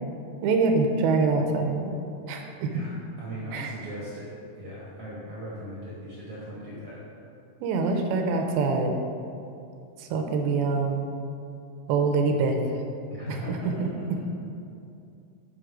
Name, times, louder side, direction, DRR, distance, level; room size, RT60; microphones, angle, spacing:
voice 1, 0.4-1.9 2.3-2.7 3.5-3.7 7.6-9.0 10.0-11.1 11.9-12.6 13.3-13.9, right 4 dB, 85° right, 3 dB, 2.6 m, -25 dB
voice 2, 2.7-7.0 13.1-14.2, equal, 60° right, -7 dB, 1.5 m, -38 dB
7.8 x 5.2 x 4.9 m, 2.6 s
omnidirectional pair, 4.4 m